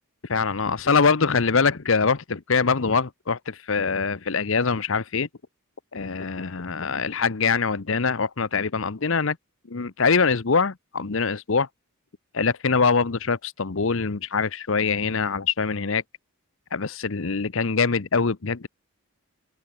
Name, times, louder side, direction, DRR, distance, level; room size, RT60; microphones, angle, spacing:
voice 1, 0.3-3.4 3.7-5.3 5.9-9.4 9.7-11.7 12.3-16.0 16.7-18.7, left 5 dB, 60° left, 0.9 m, -23 dB
open air
head